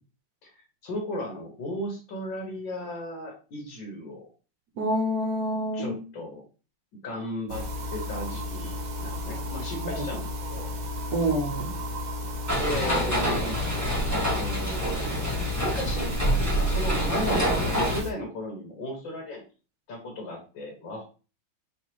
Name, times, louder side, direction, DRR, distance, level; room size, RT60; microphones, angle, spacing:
voice 1, 0.8-4.3 5.7-6.4 7.0-10.7 12.6-13.6 14.1-19.4 19.9-21.0, left 1 dB, 70° left, 0 dB, 1.8 m, -36 dB
voice 2, 4.8-6.0 9.8-10.0 11.1-11.7, right 1 dB, 55° right, 2 dB, 1.3 m, -27 dB
sound 1, 7.5-18.1, left 2 dB, 80° right, 1.8 m, -34 dB
sound 2, 12.5-18.0, right 1 dB, 10° right, 1.3 m, -26 dB
4.5 x 3.3 x 3.0 m, 0.34 s
omnidirectional pair, 2.2 m